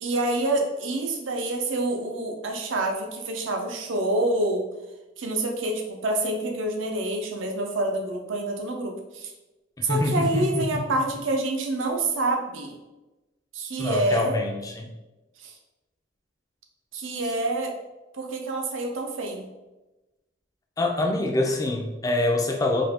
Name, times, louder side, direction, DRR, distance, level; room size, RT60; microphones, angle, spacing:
voice 1, 0.0-4.7 5.2-9.3 9.8-12.7 13.5-14.4 15.4-15.5 16.9-17.7 18.1-19.5, right 2 dB, 90° right, 2 dB, 0.6 m, -27 dB
voice 2, 9.8-10.8 13.8-14.9 20.8-22.8, left 2 dB, 20° left, 1 dB, 0.3 m, -25 dB
2.8 x 2.5 x 3.4 m, 1.1 s
head